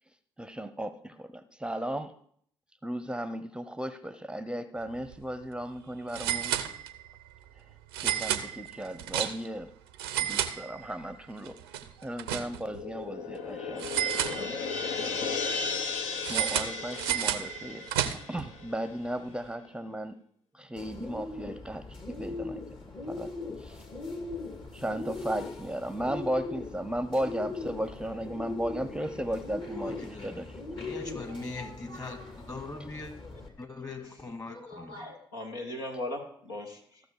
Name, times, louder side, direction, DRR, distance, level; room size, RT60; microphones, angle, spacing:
voice 1, 0.4-2.2 2.8-6.5 8.0-9.7 10.2-11.6 12.0-13.9 14.3-14.6 15.5-15.9 16.3-17.9 18.3-20.2 20.5-22.6 23.1-23.3 23.6-23.8 24.7-30.6, right 1 dB, 10° right, 0.7 m, -35 dB
sound 1, 5.0-5.1 5.4-5.5 6.1-7.2 7.9-9.6 9.9-11.1 11.4-12.8 13.8-14.9 16.2-18.5, right 11 dB, 85° right, 0.6 m, -32 dB
sound 2, 12.5-19.1, left 5 dB, 70° left, 0.9 m, -35 dB
Bird, 20.8-33.5, left 3 dB, 45° left, 2.1 m, -40 dB
voice 2, 29.7-30.5 30.8-33.1 33.6-35.1, left 3 dB, 30° left, 2.2 m, -41 dB
voice 3, 34.5-37.0, left 1 dB, 85° left, 1.2 m, -39 dB
14.5 x 6.3 x 4.7 m
hypercardioid pair, 40°, 12 cm